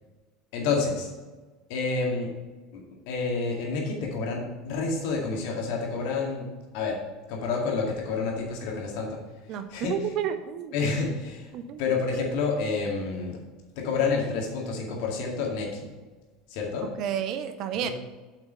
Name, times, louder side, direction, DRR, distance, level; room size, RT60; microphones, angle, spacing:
voice 1, 0.5-1.1 1.7-2.3 2.7-6.5 6.7-7.0 7.3-9.2 9.7-9.9 10.7-11.5 11.8-13.4 13.8-15.9 16.5-16.9 17.8-17.9, left 4 dB, 55° left, 0 dB, 2.0 m, -29 dB
voice 2, 9.5-10.7 11.5-11.9 16.8-17.9, right 9 dB, 45° right, 10 dB, 0.6 m, -31 dB
7.8 x 5.9 x 5.5 m, 1.3 s
figure-of-eight pair, 75°, 0 cm